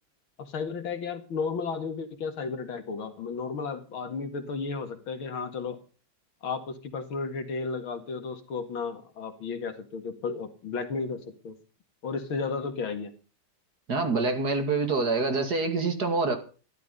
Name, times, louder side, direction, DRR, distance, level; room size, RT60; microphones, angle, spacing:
voice 1, 0.4-5.8 6.4-11.6 12.0-13.1, left 4 dB, 70° left, 8 dB, 2.7 m, -33 dB
voice 2, 13.9-16.4, right 3 dB, 45° right, 7 dB, 2.8 m, -26 dB
13.5 x 12.5 x 5.4 m, 0.37 s
omnidirectional pair, 2.4 m